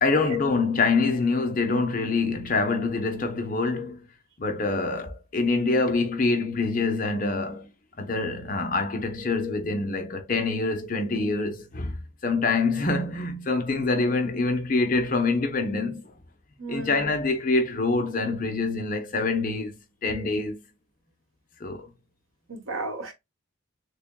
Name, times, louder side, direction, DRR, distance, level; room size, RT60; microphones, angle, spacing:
voice 1, 0.0-4.0 4.4-7.7 8.0-12.0 12.2-16.1 16.7-20.6 21.6-21.9, left 3 dB, 40° left, 0.7 m, -25 dB
voice 2, 16.6-17.2 22.5-23.1, right 2 dB, 85° right, 1.3 m, -34 dB
6.6 x 2.2 x 2.2 m
head